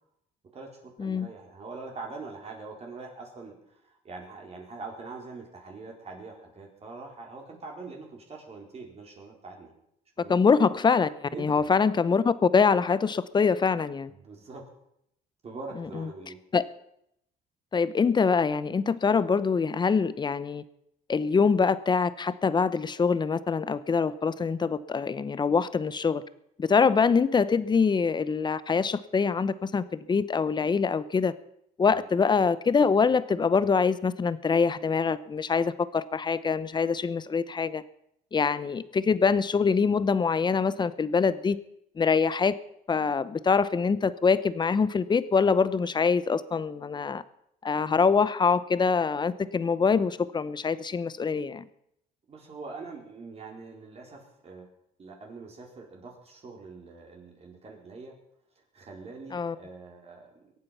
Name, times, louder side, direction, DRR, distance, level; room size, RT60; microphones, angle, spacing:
voice 1, 0.5-9.7 10.2-10.4 11.3-11.7 14.1-14.6 15.4-16.4 31.9-32.0 52.3-54.7 55.0-58.2 58.6-60.4, right 3 dB, 35° right, 0 dB, 4.1 m, -43 dB
voice 2, 10.3-11.1 11.4-14.1 16.5-16.6 17.7-20.6 21.1-26.2 26.6-31.3 31.8-37.8 38.3-41.6 42.0-42.5 42.9-47.2 47.6-51.6 59.3-59.5, left 5 dB, 25° left, 16 dB, 0.8 m, -24 dB
22.5 x 8.8 x 5.8 m, 0.76 s
cardioid pair, 110°, 17 cm